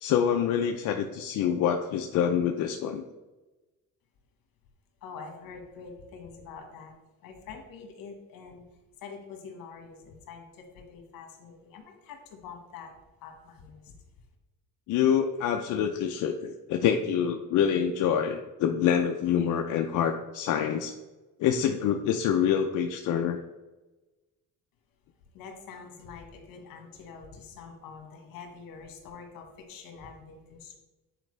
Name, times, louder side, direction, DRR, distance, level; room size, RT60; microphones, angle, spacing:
voice 1, 0.0-3.0 14.9-20.9 21.4-23.4, left 8 dB, 65° left, 4 dB, 0.5 m, -26 dB
voice 2, 5.0-6.9 7.2-8.6 9.0-12.9 13.2-13.9 25.3-30.8, left 5 dB, 80° left, 3 dB, 1.5 m, -45 dB
9.0 x 4.5 x 3.2 m, 1.1 s
cardioid pair, 160°, 33 cm